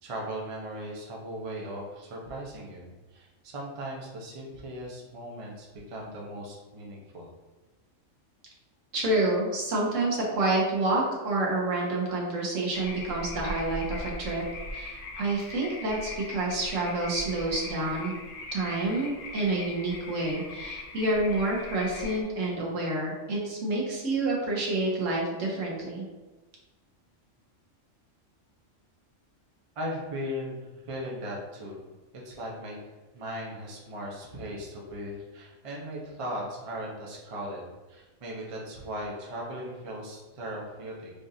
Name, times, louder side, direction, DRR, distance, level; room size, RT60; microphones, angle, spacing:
voice 1, 0.0-7.3 29.8-31.8 32.2-32.8 33.1-41.1, equal, 35° right, -3 dB, 0.6 m, -38 dB
voice 2, 8.9-14.4 14.7-18.1 18.5-26.1, right 2 dB, 75° right, -3 dB, 1.3 m, -28 dB
sound 1, 12.7-22.2, left 2 dB, 60° left, 0.6 m, -40 dB
4.9 x 2.5 x 2.7 m, 1.2 s
omnidirectional pair, 1.3 m